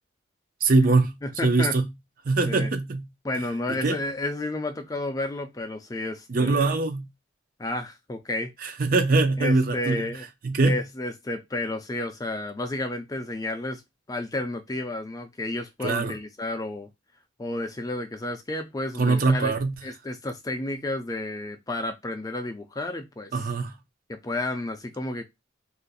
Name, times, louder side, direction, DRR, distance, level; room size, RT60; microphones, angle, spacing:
voice 1, 0.6-1.1 1.4-1.8 2.2-3.0 3.7-4.0 6.3-7.1 8.6-10.1 10.4-10.8 15.8-16.1 19.0-19.7 23.3-23.7, right 3 dB, 45° right, 0.4 m, -22 dB
voice 2, 1.2-1.8 2.4-2.7 3.2-6.7 7.6-8.5 9.4-10.3 10.6-13.8 14.1-16.9 17.4-19.5 19.8-23.4 24.1-25.2, left 2 dB, 20° left, 0.4 m, -31 dB
2.5 x 2.5 x 3.9 m
head